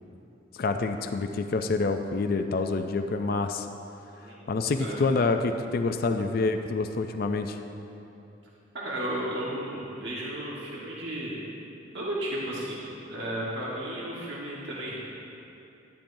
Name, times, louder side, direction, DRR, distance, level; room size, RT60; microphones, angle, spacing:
voice 1, 0.6-3.7 4.5-7.6, left 3 dB, 50° left, 6 dB, 0.4 m, -27 dB
voice 2, 8.7-11.4 11.9-12.8 13.1-14.9, right 1 dB, 65° right, -6 dB, 1.4 m, -33 dB
12.0 x 10.0 x 2.7 m, 2.9 s
head